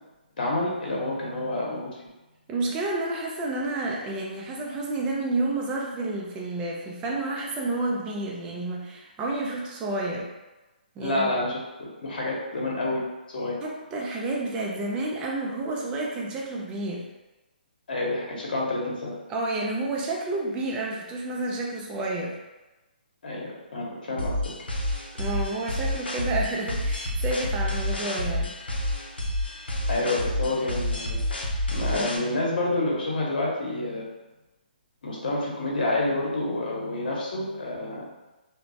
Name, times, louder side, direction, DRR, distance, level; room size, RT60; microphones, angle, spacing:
voice 1, 0.4-1.8 11.0-13.6 17.9-19.2 23.2-24.3 29.9-31.2 31.7-34.0 35.0-38.0, left 2 dB, 65° left, -3 dB, 0.9 m, -28 dB
voice 2, 2.5-10.3 11.0-11.3 13.6-17.1 19.3-22.3 25.1-28.5 31.9-32.1, right 2 dB, 15° right, -2 dB, 0.4 m, -30 dB
sound 1, 24.2-32.2, left 1 dB, 90° left, 0.5 m, -29 dB
3.0 x 2.1 x 2.5 m, 1.1 s
figure-of-eight pair, 140°, 5 cm